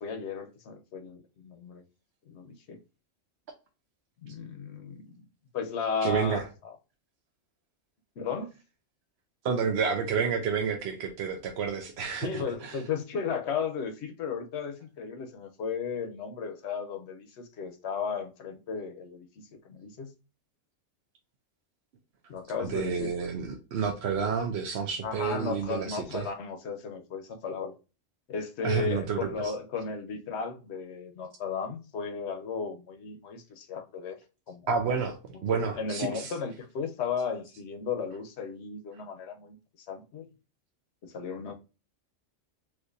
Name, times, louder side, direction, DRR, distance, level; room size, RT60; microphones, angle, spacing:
voice 1, 0.0-1.8 2.3-2.8 4.2-5.3 5.5-6.7 8.2-8.5 12.2-20.1 22.3-23.3 25.0-27.7 28.3-34.2 34.5-34.9 35.3-39.6 39.9-40.3 41.0-41.5, left 5 dB, 65° left, 0.9 m, -35 dB
voice 2, 6.0-6.5 9.4-12.8 22.6-26.3 28.6-29.5 34.7-36.3, right 6 dB, 65° right, 0.8 m, -30 dB
4.4 x 2.5 x 2.5 m
omnidirectional pair, 1.3 m